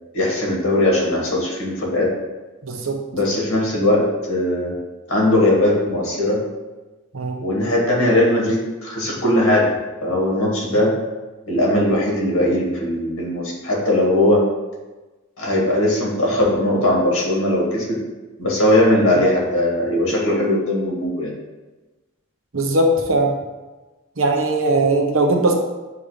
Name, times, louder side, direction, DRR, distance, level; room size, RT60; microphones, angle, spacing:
voice 1, 0.1-2.1 3.1-4.8 5.1-6.4 7.4-9.7 10.0-11.0 11.5-14.5 15.4-18.0 18.4-21.3, left 1 dB, 90° left, -3 dB, 1.9 m, -19 dB
voice 2, 2.6-3.0 7.1-7.4 22.5-23.3 24.2-25.5, right 2 dB, 70° right, 2 dB, 0.9 m, -19 dB
7.1 x 2.6 x 4.9 m, 1.2 s
head